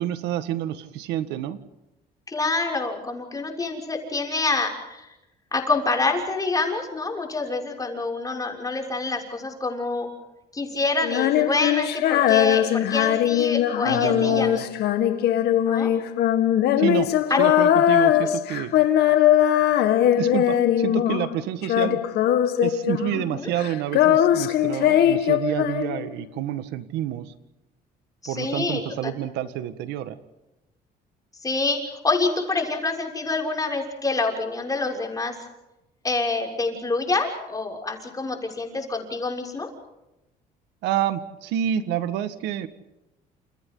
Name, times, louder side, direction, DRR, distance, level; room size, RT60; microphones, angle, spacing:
voice 1, 0.0-1.6 13.8-14.6 16.8-17.1 17.4-18.7 20.1-22.0 22.6-27.3 28.3-30.2 40.8-42.7, right 11 dB, 90° right, 11 dB, 1.7 m, -28 dB
voice 2, 2.3-5.1 5.5-10.1 10.5-14.6 15.6-15.9 17.3-17.4 18.2-18.3 23.1-23.5 28.2-29.1 31.4-35.4 36.0-39.7, left 3 dB, 20° left, 1 dB, 6.5 m, -27 dB
Female singing, 11.0-21.4 21.6-23.3 23.6-26.2, left 11 dB, 75° left, 1.9 m, -20 dB
30.0 x 29.0 x 4.0 m, 0.96 s
cardioid pair, 110°, 17 cm